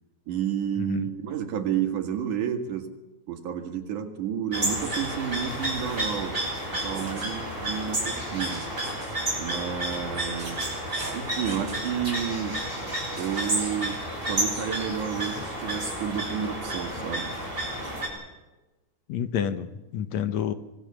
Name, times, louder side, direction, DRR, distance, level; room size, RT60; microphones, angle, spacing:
voice 1, 0.3-2.9 3.3-6.4 6.7-8.6 9.4-10.6 11.1-12.6 13.2-17.3, right 8 dB, 80° right, 5 dB, 3.4 m, -31 dB
sound 1, 4.5-18.1, right 1 dB, 15° right, 6.7 m, -31 dB
sound 2, 6.9-7.3 8.4-9.2 10.0-11.9 13.2-14.0, right 2 dB, 35° right, 5.6 m, -43 dB
voice 2, 19.1-20.5, left 8 dB, 70° left, 10 dB, 2.2 m, -29 dB
25.0 x 19.0 x 7.0 m, 1.1 s
omnidirectional pair, 3.5 m